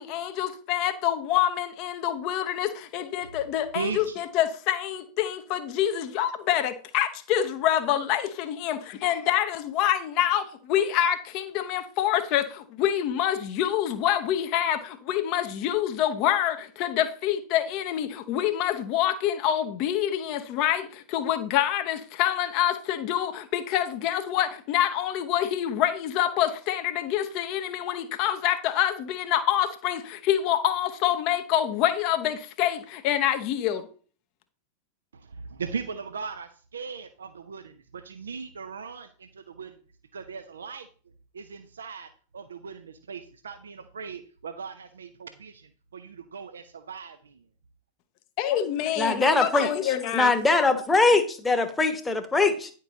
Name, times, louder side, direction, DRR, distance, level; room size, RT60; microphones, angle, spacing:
voice 1, 0.0-33.9 48.4-50.3, left 11 dB, 40° left, 0.9 m, -26 dB
voice 2, 3.7-4.2 35.1-39.8 40.1-40.9 41.3-47.4, right 5 dB, 70° right, 0.6 m, -38 dB
voice 3, 49.0-52.7, left 3 dB, 10° left, 1.1 m, -22 dB
9.9 x 5.4 x 3.9 m
figure-of-eight pair, 90°, 0 cm